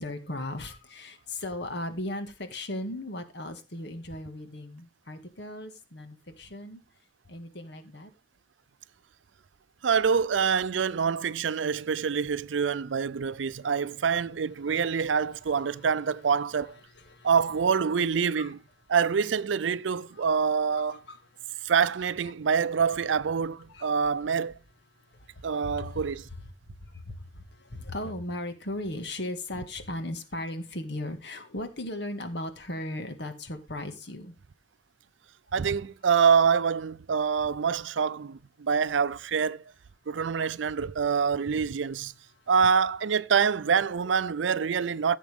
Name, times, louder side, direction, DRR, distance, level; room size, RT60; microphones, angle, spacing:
voice 1, 0.0-6.8 7.3-8.1 17.0-17.3 18.3-18.5 20.2-20.3 21.1-21.2 23.7-23.9 25.2-26.0 26.8-34.3, left 1 dB, 65° left, 1.9 m, -37 dB
voice 2, 9.8-16.8 17.2-18.6 18.9-21.0 21.6-24.6 25.4-26.3 35.5-39.6 40.1-42.1 42.5-45.2, right 6 dB, 85° right, 0.5 m, -26 dB
15.5 x 7.3 x 3.6 m
head